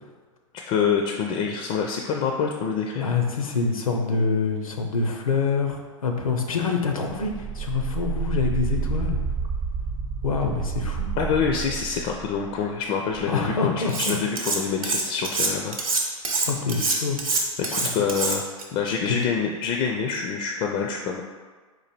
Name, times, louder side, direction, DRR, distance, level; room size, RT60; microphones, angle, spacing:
voice 1, 0.7-3.1 11.2-15.8 17.3-18.4 18.7-21.2, left 6 dB, 35° left, 2 dB, 0.4 m, -26 dB
voice 2, 3.0-9.2 10.2-11.1 13.3-14.2 16.4-17.2 17.8-17.9, left 5 dB, 85° left, 3 dB, 0.7 m, -26 dB
sound 1, 7.1-12.6 13.1-13.2, right 6 dB, 30° right, 0.6 m, -29 dB
Cutlery silverware, 13.9-14.6 14.8-18.6, right 3 dB, 90° right, 0.8 m, -25 dB
4.0 x 2.6 x 4.3 m, 1.4 s
hypercardioid pair, 105°, 17 cm